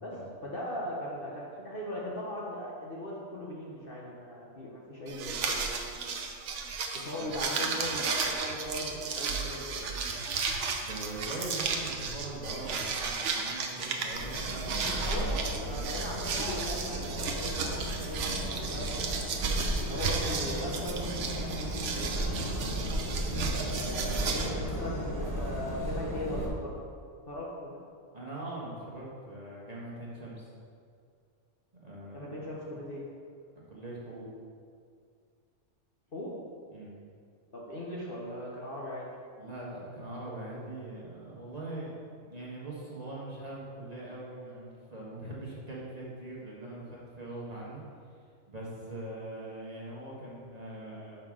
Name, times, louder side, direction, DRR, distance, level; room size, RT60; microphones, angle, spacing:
voice 1, 0.4-5.7 6.9-9.8 15.0-19.4 19.9-21.6 21.9-22.1 24.3-24.5 24.8-26.7 27.3-27.7 32.1-33.0 36.1-36.3 37.5-39.1, left 1 dB, 45° left, -5 dB, 1.1 m, -39 dB
sound 1, 5.1-24.5, right 5 dB, 60° right, 1.0 m, -34 dB
voice 2, 10.8-15.2 22.1-22.7 23.3-24.7 28.1-30.5 31.8-32.4 32.7-32.8 33.7-34.3 36.7-37.0 39.3-47.8 48.5-51.2, right 1 dB, 30° right, -6 dB, 1.5 m, -42 dB
sound 2, 14.1-26.5, equal, 15° left, 1.4 m, -35 dB
5.7 x 5.6 x 6.2 m, 2.2 s
omnidirectional pair, 1.5 m